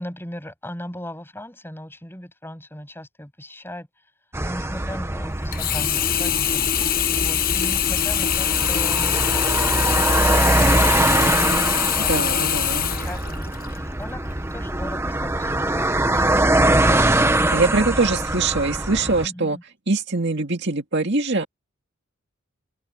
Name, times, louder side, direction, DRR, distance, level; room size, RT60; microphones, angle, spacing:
voice 1, 0.0-3.9 4.4-10.0 10.3-12.6 12.9-17.1 17.7-18.0 19.2-19.6, left 1 dB, 10° left, 7.2 m, -38 dB
sound 1, 4.3-19.3, right 1 dB, 10° right, 1.0 m, -23 dB
Sink (filling or washing), 5.5-13.8 14.3-14.4, left 10 dB, 40° left, 1.1 m, -23 dB
voice 2, 12.1-12.9 17.5-19.6 19.9-21.5, right 3 dB, 50° right, 2.2 m, -23 dB
open air
head